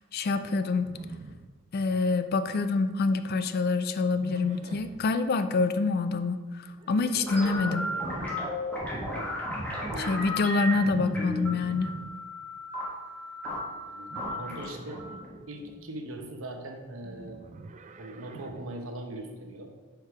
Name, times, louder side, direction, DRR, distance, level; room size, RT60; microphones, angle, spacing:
voice 1, 0.1-0.9 1.7-6.4 6.9-7.9 10.1-11.9, left 4 dB, 50° left, 11 dB, 0.4 m, -26 dB
Livestock farm animals working animals, 0.8-2.0 2.3-2.8 4.1-5.1 6.7-8.4 10.7-12.1 14.1-15.2 17.0-18.7, right 3 dB, 35° right, 0.3 m, -43 dB
sound 1, 7.3-16.2, left 1 dB, 5° left, 1.3 m, -34 dB
voice 2, 9.9-10.2 13.9-15.0 15.5-17.4 18.0-19.7, right 1 dB, 90° right, 4 dB, 0.8 m, -40 dB
5.0 x 4.6 x 4.6 m, 1.3 s
head